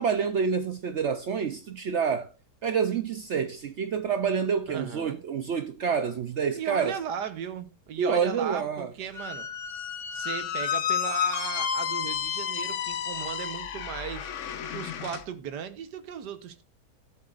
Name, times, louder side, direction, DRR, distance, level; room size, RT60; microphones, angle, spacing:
voice 1, 0.0-2.3 2.6-7.0 8.0-8.9, right 6 dB, 65° right, 0.7 m, -28 dB
voice 2, 4.7-5.2 6.5-9.5 10.1-14.3 14.7-16.6, right 8 dB, 80° right, 1.5 m, -36 dB
Squeak, 9.1-15.2, left 8 dB, 60° left, 0.9 m, -31 dB
13.5 x 7.7 x 2.5 m
omnidirectional pair, 1.8 m